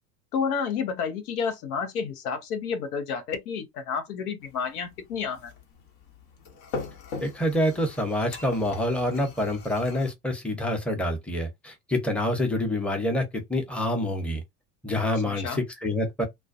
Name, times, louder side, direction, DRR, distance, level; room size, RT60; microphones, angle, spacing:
voice 1, 0.3-5.5 15.2-15.6, left 6 dB, 75° left, 0.8 m, -30 dB
sound 1, 4.4-10.1, left 4 dB, 60° left, 1.0 m, -41 dB
voice 2, 7.2-14.4 14.8-16.2, left 1 dB, 5° left, 0.8 m, -27 dB
2.2 x 2.2 x 2.6 m
hypercardioid pair, 75°, 45 cm